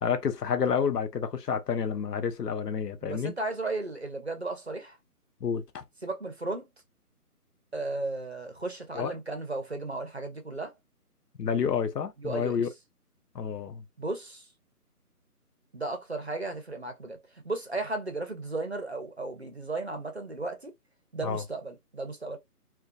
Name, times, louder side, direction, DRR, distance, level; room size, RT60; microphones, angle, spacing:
voice 1, 0.0-3.3 5.4-5.8 8.9-9.1 11.4-12.7 13.3-13.8 21.2-21.4, left 7 dB, 85° left, 0.7 m, -29 dB
voice 2, 3.0-5.0 6.0-6.7 7.7-10.7 12.2-12.6 14.0-14.5 15.7-20.7 21.1-22.4, right 2 dB, 45° right, 0.5 m, -35 dB
2.6 x 2.2 x 2.4 m
figure-of-eight pair, 175°, 47 cm